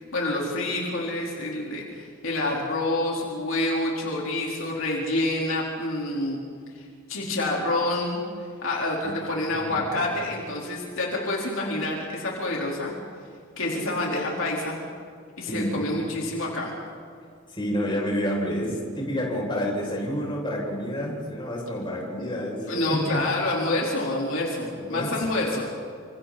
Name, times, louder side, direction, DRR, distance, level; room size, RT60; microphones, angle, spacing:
voice 1, 0.1-6.4 6.8-6.9 7.1-12.9 13.6-14.7 15.4-16.7 22.2-22.3 22.7-25.7, left 2 dB, 65° left, -3 dB, 4.3 m, -27 dB
voice 2, 9.5-9.9 15.5-16.0 17.5-23.2 24.8-25.1, equal, 25° left, -3 dB, 7.0 m, -29 dB
29.0 x 27.5 x 4.3 m, 2.3 s
head